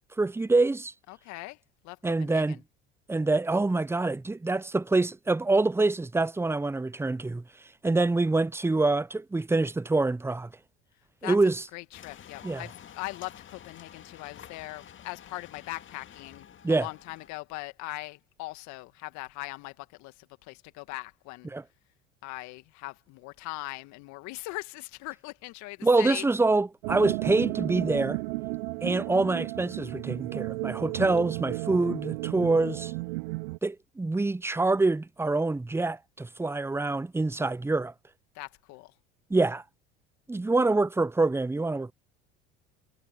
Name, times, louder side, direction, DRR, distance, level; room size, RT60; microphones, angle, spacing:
voice 1, 0.2-0.9 2.0-2.6 3.1-7.4 7.8-10.5 11.2-11.6 12.4-12.6 16.6-16.9 21.5-21.6 25.8-28.2 28.8-32.9 33.6-37.9 39.3-39.6 40.3-41.9, right 3 dB, 10° right, 0.8 m, -26 dB
voice 2, 1.1-1.6 1.8-2.6 11.2-11.4 11.7-21.5 22.2-26.3 38.3-38.9, left 22 dB, 60° left, 1.8 m, -40 dB
sound 1, 11.9-17.3, left 9 dB, 40° left, 2.0 m, -50 dB
sound 2, 26.8-33.6, right 24 dB, 70° right, 0.7 m, -33 dB
hypercardioid pair, 70°, 32 cm